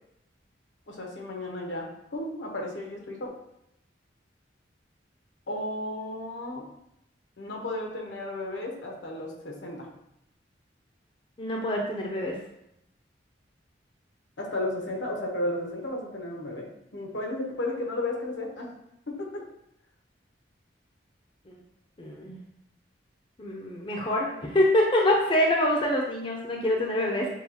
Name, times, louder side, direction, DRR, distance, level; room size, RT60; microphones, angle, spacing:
voice 1, 0.9-3.3 5.5-6.7 7.4-9.9 14.4-18.7 19.1-19.4, left 1 dB, 80° left, 0 dB, 1.0 m, -33 dB
voice 2, 11.4-12.3 21.5-21.6 22.0-22.4 23.4-27.3, left 1 dB, 30° left, -1 dB, 0.5 m, -25 dB
6.9 x 2.4 x 2.8 m, 0.80 s
head